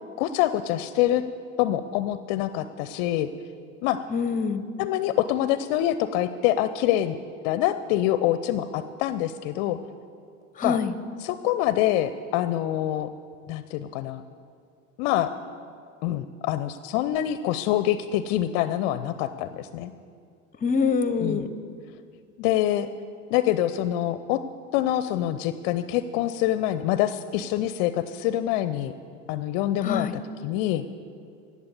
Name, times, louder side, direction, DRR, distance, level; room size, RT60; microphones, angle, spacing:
voice 1, 0.2-1.2 1.6-3.3 3.8-4.0 4.8-7.2 7.4-9.8 10.6-10.8 11.2-13.1 13.5-14.2 15.0-15.3 16.0-19.9 21.2-21.4 22.4-22.9 23.3-24.4 24.7-28.9 29.3-30.1 30.4-30.8, left 13 dB, 50° left, 12 dB, 0.6 m, -25 dB
voice 2, 4.1-4.6 10.6-10.9 20.6-21.5 29.8-30.1, left 5 dB, 20° left, 12 dB, 0.9 m, -25 dB
16.5 x 7.2 x 8.4 m, 2.2 s
figure-of-eight pair, 70°, 39 cm